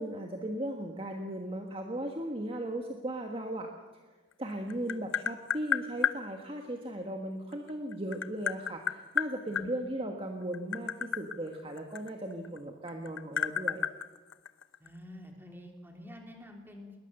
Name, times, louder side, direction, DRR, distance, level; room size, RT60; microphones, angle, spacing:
voice 1, 0.0-3.7 4.4-13.9, right 1 dB, 30° right, 3 dB, 1.5 m, -37 dB
Tap, 4.3-6.2 7.5-9.7 10.4-12.6 12.9-14.9, left 7 dB, 85° left, 0.8 m, -32 dB
voice 2, 14.8-17.0, left 1 dB, 10° right, 2 dB, 3.2 m, -48 dB
21.0 x 20.0 x 6.8 m, 1.3 s
head